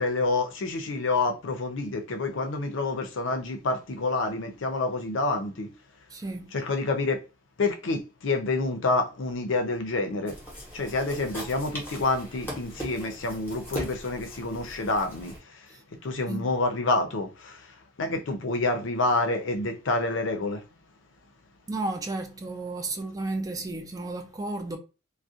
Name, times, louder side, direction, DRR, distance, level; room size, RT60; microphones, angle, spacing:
voice 1, 0.0-5.7 6.5-7.2 7.6-10.4 10.7-15.3 16.0-17.6 18.0-20.6, left 3 dB, 70° left, 0.5 m, -28 dB
voice 2, 6.1-6.5 15.7-15.8 16.3-16.5 21.7-24.8, right 2 dB, 20° right, 0.4 m, -33 dB
sound 1, 10.3-15.4, equal, 10° left, 0.9 m, -39 dB
2.4 x 2.1 x 2.6 m
head